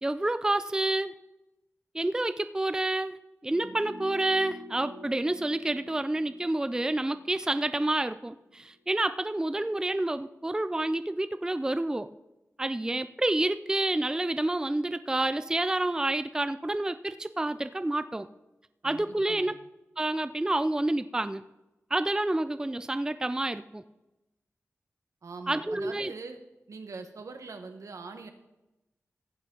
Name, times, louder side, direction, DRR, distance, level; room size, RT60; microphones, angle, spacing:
voice 1, 0.0-1.1 1.9-12.1 12.6-18.3 18.8-19.5 20.0-21.4 21.9-23.8 25.5-26.1, right 2 dB, 15° right, 12 dB, 0.4 m, -29 dB
sound 1, 3.5-8.7 9.0-9.1, equal, 45° right, 1.7 m, -48 dB
voice 2, 18.8-19.5 25.2-26.4 26.7-28.3, right 4 dB, 75° right, 6 dB, 1.2 m, -43 dB
15.0 x 8.3 x 3.8 m, 0.96 s
wide cardioid pair, 90°, 5 cm